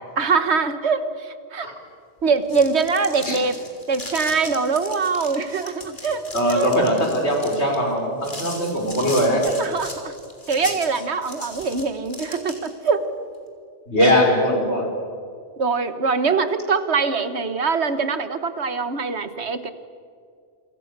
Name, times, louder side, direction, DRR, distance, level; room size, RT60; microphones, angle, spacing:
voice 1, 0.2-1.7 2.2-3.6 3.9-6.7 9.6-10.1 10.5-13.1 14.0-14.1 15.6-19.7, right 5 dB, 75° right, 11 dB, 1.6 m, -23 dB
sound 1, 2.3-12.9, left 1 dB, 45° left, 3.7 m, -37 dB
voice 2, 6.3-9.4 10.6-10.7 13.9-14.9, equal, 75° left, 1 dB, 5.6 m, -20 dB
28.5 x 25.5 x 6.8 m, 2.2 s
omnidirectional pair, 1.1 m